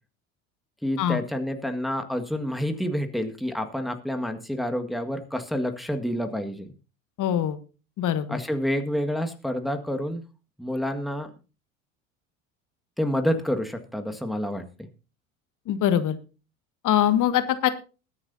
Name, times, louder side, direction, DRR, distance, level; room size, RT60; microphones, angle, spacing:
voice 1, 0.8-6.7 8.3-10.2 10.6-11.3 13.0-14.9, equal, ahead, 5 dB, 1.7 m, -28 dB
voice 2, 7.2-7.6 8.0-8.4 15.7-16.2 16.8-17.7, left 10 dB, 50° left, 11 dB, 1.6 m, -23 dB
21.0 x 9.7 x 2.7 m, 0.32 s
hypercardioid pair, 70°, 39 cm